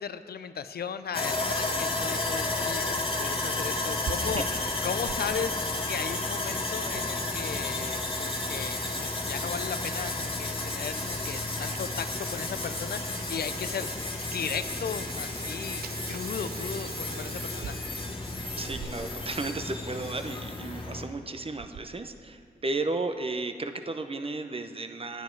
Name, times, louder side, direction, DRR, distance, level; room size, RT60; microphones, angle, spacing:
voice 1, 0.0-5.6 5.9-13.9 14.2-17.8, left 7 dB, 75° left, 11 dB, 0.5 m, -36 dB
Sawing, 1.1-21.0, left 2 dB, 35° left, 1.4 m, -32 dB
Water tap faucet / Sink (filling or washing), 4.0-5.2 5.7-5.8 6.5-6.6 6.9-7.0 7.4-7.6 7.9-19.3 19.6-19.7 20.0-20.1 20.9-21.2 21.6-22.0, right 6 dB, 70° right, 0.5 m, -44 dB
voice 2, 4.2-4.5 18.6-25.2, right 3 dB, 35° right, 8 dB, 0.7 m, -34 dB
9.6 x 9.2 x 4.6 m, 2.2 s
cardioid pair, 45°, 17 cm